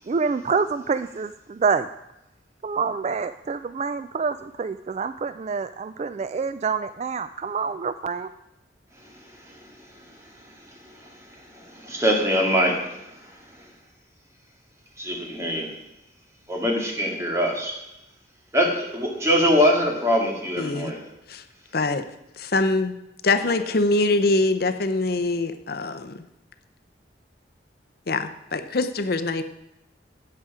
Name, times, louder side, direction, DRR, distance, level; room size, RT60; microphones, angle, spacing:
voice 1, 0.1-1.9 2.6-8.3, right 5 dB, 35° right, 12 dB, 0.3 m, -27 dB
voice 2, 10.8-13.1 15.0-15.7 16.5-17.8 18.5-21.0, equal, 15° right, 0 dB, 2.2 m, -23 dB
voice 3, 20.6-20.9 21.3-21.4 21.7-22.0 22.4-22.9 23.2-26.2 28.1-29.4, left 2 dB, 55° left, 9 dB, 0.7 m, -23 dB
13.5 x 8.7 x 4.9 m, 0.88 s
head